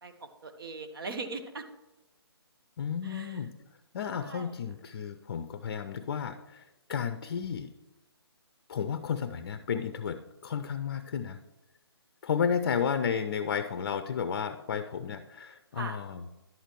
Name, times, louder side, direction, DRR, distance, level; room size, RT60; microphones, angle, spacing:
voice 1, 0.0-1.6 3.0-3.4 4.2-4.5 15.8-16.0, right 3 dB, 55° right, 7 dB, 1.2 m, -40 dB
voice 2, 2.8-3.5 3.9-6.6 6.9-7.7 8.7-11.4 12.2-16.3, left 7 dB, 45° left, 11 dB, 0.5 m, -32 dB
11.0 x 8.2 x 3.1 m, 1.0 s
figure-of-eight pair, 140°, 14 cm